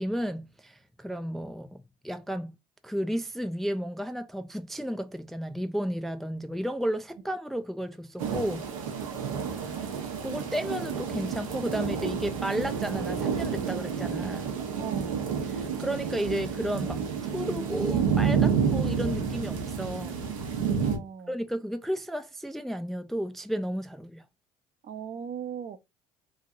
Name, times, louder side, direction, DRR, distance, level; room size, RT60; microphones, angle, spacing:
voice 1, 0.0-2.5 2.8-8.7 10.2-14.5 15.5-17.0 17.3-20.2 21.3-24.2, equal, ahead, 0.3 m, -33 dB
sound 1, 8.2-21.0, right 6 dB, 90° right, 0.9 m, -29 dB
voice 2, 9.1-9.5 14.7-15.2 20.8-21.3 24.8-25.8, right 8 dB, 45° right, 0.5 m, -39 dB
3.1 x 2.6 x 2.4 m
hypercardioid pair, 65°, 17 cm